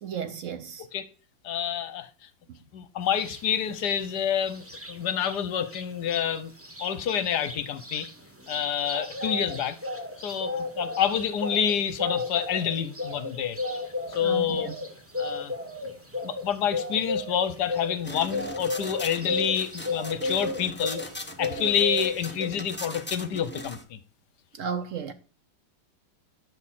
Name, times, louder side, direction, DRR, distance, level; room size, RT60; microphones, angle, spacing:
voice 1, 0.0-0.9 10.3-10.4 14.2-14.7 24.5-25.1, right 7 dB, 70° right, 0.7 m, -34 dB
voice 2, 1.4-2.1 2.7-6.5 6.8-8.1 8.5-9.8 10.2-13.6 14.1-14.7 15.2-15.5 16.2-21.0 21.4-24.0, left 8 dB, 65° left, 1.2 m, -28 dB
sound 1, 3.2-3.4 3.8-5.4 5.7-5.8 6.1-21.1 21.4-22.5, left 2 dB, 10° right, 0.8 m, -33 dB
sound 2, 18.0-23.8, left 1 dB, 10° left, 0.5 m, -40 dB
11.0 x 4.2 x 7.4 m
omnidirectional pair, 2.1 m